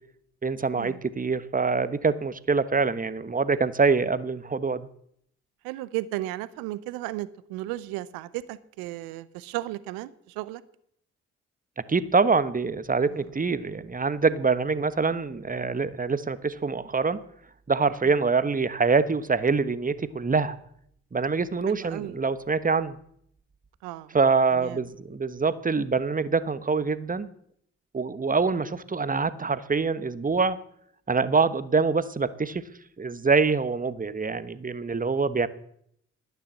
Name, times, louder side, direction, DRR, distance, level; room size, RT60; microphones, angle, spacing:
voice 1, 0.4-4.9 11.9-17.2 17.7-20.6 21.1-22.9 24.1-27.3 27.9-30.6 31.1-32.6 33.0-35.5, right 4 dB, 25° right, 14 dB, 1.1 m, -25 dB
voice 2, 5.6-10.6 13.1-13.2 18.0-18.1 21.7-22.2 23.8-24.1 24.5-24.8, right 16 dB, 80° right, 17 dB, 0.7 m, -35 dB
11.5 x 9.5 x 7.5 m, 0.70 s
hypercardioid pair, 40°, 35 cm